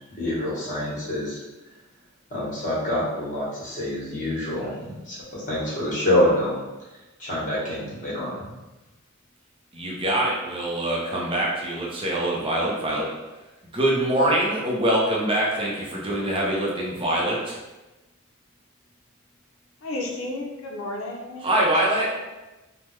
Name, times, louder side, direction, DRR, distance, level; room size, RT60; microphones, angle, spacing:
voice 1, 0.2-1.4 2.3-6.6 7.2-8.5, left 1 dB, 35° left, -7 dB, 1.2 m, -26 dB
voice 2, 9.7-13.1 13.7-17.6 21.4-22.1, right 1 dB, 25° right, -4 dB, 0.6 m, -24 dB
voice 3, 19.8-22.2, left 2 dB, 65° left, 0 dB, 0.5 m, -34 dB
3.3 x 2.2 x 3.1 m, 1.1 s
head